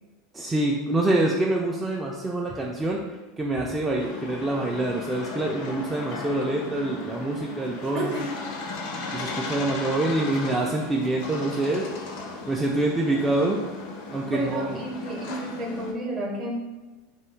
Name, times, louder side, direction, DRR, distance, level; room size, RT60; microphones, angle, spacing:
voice 1, 0.3-3.0 3.4-8.1 9.1-11.9 12.5-13.6 14.1-14.8, right 2 dB, 15° right, -2 dB, 0.3 m, -26 dB
sound 1, 4.0-15.9, left 3 dB, 60° left, 0.4 m, -36 dB
voice 2, 7.9-8.3 8.6-8.7 14.3-16.5, right 1 dB, 40° right, 0 dB, 0.7 m, -31 dB
2.4 x 2.2 x 3.2 m, 1.2 s
hypercardioid pair, 85°, 0 cm